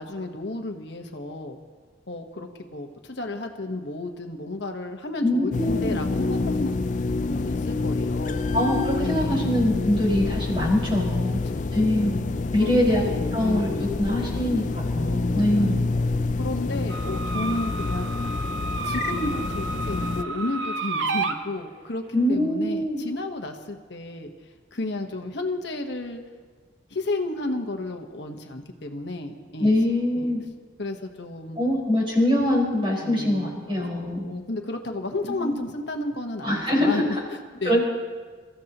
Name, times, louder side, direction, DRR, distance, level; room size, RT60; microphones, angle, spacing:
voice 1, 0.0-1.6 2.1-8.4 9.0-9.6 11.0-11.7 12.6-13.9 14.2-14.5 15.1-15.9 16.4-18.1 18.8-24.3 24.7-26.2 26.9-29.7 30.2-30.3 30.8-31.6 33.0-37.2 37.6-37.8, left 2 dB, 70° left, 4 dB, 1.2 m, -32 dB
voice 2, 5.2-6.0 8.5-11.4 11.7-12.2 12.5-13.0 13.3-15.8 22.1-23.0 29.6-30.4 31.6-34.2 35.4-35.6 36.4-37.0 37.7-37.9, left 1 dB, 30° right, -4 dB, 5.0 m, -23 dB
sound 1, 5.5-20.2, left 3 dB, 40° left, 0.4 m, -27 dB
sound 2, 16.9-21.4, right 3 dB, 85° right, 1.0 m, -31 dB
27.5 x 15.0 x 3.0 m, 1.5 s
head